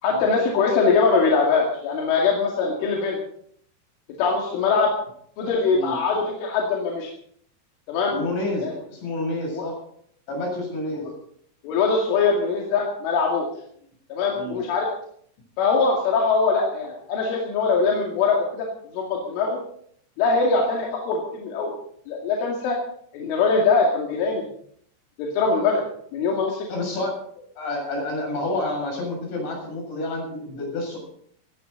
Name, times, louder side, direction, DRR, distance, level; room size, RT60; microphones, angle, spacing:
voice 1, 0.0-3.2 4.2-4.9 5.4-7.1 7.9-8.2 8.6-8.7 9.5-9.6 10.9-11.1 11.6-13.5 14.1-14.9 15.6-18.7 18.9-19.6 20.2-21.8 22.1-22.8 23.1-24.5 25.2-26.7, left 4 dB, 90° left, -1 dB, 4.8 m, -22 dB
voice 2, 8.1-9.8 10.3-11.1 14.3-14.6 26.7-27.2 27.6-31.0, left 2 dB, 70° left, 1 dB, 9.5 m, -29 dB
17.5 x 17.0 x 4.0 m, 0.64 s
omnidirectional pair, 5.4 m